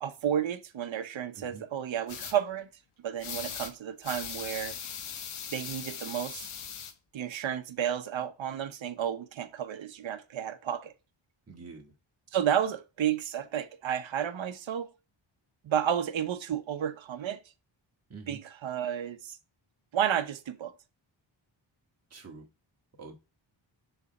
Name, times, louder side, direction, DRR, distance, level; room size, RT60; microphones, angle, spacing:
voice 1, 0.0-2.7 3.0-4.8 5.5-6.5 7.1-10.9 12.3-14.9 15.6-17.4 18.3-19.4 19.9-20.7, right 9 dB, 70° right, 1.0 m, -32 dB
voice 2, 1.3-1.6 11.5-11.9 18.1-18.4 22.1-22.5 23.0-23.2, right 4 dB, 30° right, 1.8 m, -46 dB
sound 1, 2.1-2.3 3.2-3.7 4.0-6.9, left 7 dB, 85° left, 1.2 m, -39 dB
6.8 x 3.5 x 5.3 m
wide cardioid pair, 160°, 48 cm